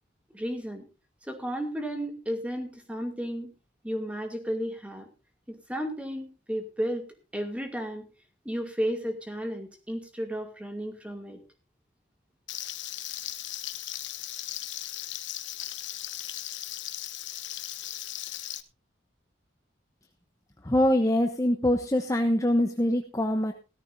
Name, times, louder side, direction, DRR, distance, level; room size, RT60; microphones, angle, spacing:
voice 1, 0.3-0.8 1.2-3.5 3.8-5.1 5.5-7.1 7.3-8.1 8.4-11.4, equal, 5° right, 4 dB, 2.4 m, -33 dB
Frying (food), 12.5-18.6, left 13 dB, 75° left, 1.0 m, -37 dB
voice 2, 20.6-23.5, left 1 dB, 15° left, 5 dB, 0.9 m, -24 dB
17.5 x 13.5 x 2.7 m, 0.30 s
head